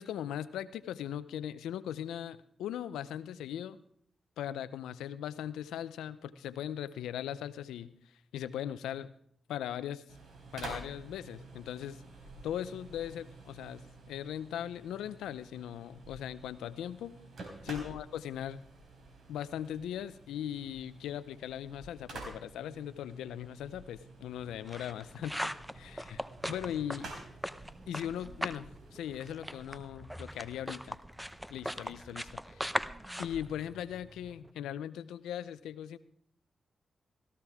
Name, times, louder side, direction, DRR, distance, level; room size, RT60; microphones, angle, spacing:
voice 1, 0.0-3.8 4.4-7.9 8.3-9.1 9.5-10.0 10.5-12.0 12.4-13.8 14.1-17.1 17.7-18.6 19.3-25.5 25.7-27.1 27.9-31.0 31.5-32.7 33.2-36.0, left 10 dB, 90° left, 15 dB, 0.6 m, -39 dB
sound 1, 10.1-29.6, right 3 dB, 70° right, 4.0 m, -50 dB
sound 2, 24.4-28.7 29.0-34.3, equal, ahead, 0.8 m, -40 dB
sound 3, 25.2-34.5, right 2 dB, 30° right, 1.4 m, -56 dB
17.0 x 14.5 x 3.6 m, 0.65 s
supercardioid pair, 45°, 0 cm